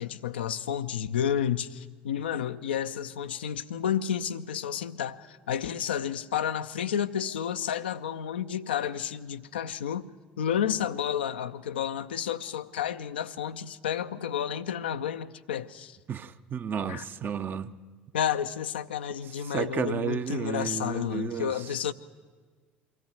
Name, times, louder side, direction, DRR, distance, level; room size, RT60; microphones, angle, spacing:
voice 1, 0.0-10.1 10.4-16.0 16.9-17.1 18.1-21.9, left 9 dB, 75° left, 0.5 m, -31 dB
voice 2, 16.1-17.7 19.5-21.5, right 7 dB, 35° right, 0.8 m, -32 dB
23.5 x 14.0 x 9.3 m
figure-of-eight pair, 60°, 6 cm